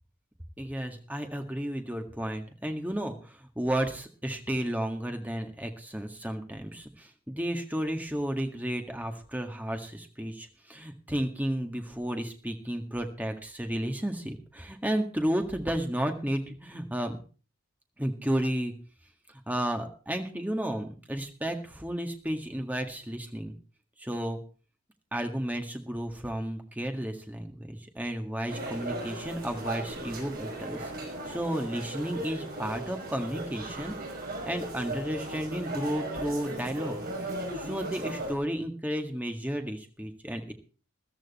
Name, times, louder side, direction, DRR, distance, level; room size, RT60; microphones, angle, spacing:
voice 1, 0.6-17.2 18.0-18.7 19.5-23.6 24.0-24.4 25.1-33.9 34.4-37.1 37.5-40.5, equal, 5° right, 4 dB, 1.8 m, -33 dB
sound 1, 28.5-38.3, right 1 dB, 40° right, 5.4 m, -37 dB
14.5 x 14.0 x 4.2 m, 0.37 s
head